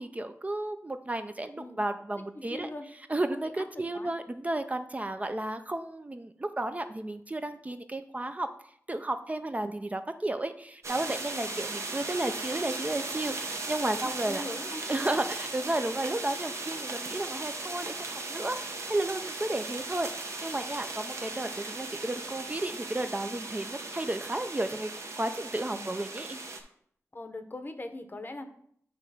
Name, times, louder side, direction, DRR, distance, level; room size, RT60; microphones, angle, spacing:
voice 1, 0.0-2.7 3.1-8.5 8.9-14.4 14.9-24.9 25.1-26.4, right 1 dB, 25° right, 8 dB, 0.4 m, -33 dB
voice 2, 1.5-1.9 2.3-2.8 3.3-4.1 11.3-11.6 13.8-14.8 25.6-25.9 27.1-28.5, left 2 dB, 35° left, 7 dB, 0.7 m, -41 dB
sound 1, 10.8-26.6, right 3 dB, 60° right, 0.8 m, -37 dB
8.4 x 2.9 x 4.8 m, 0.66 s
wide cardioid pair, 80°, 6 cm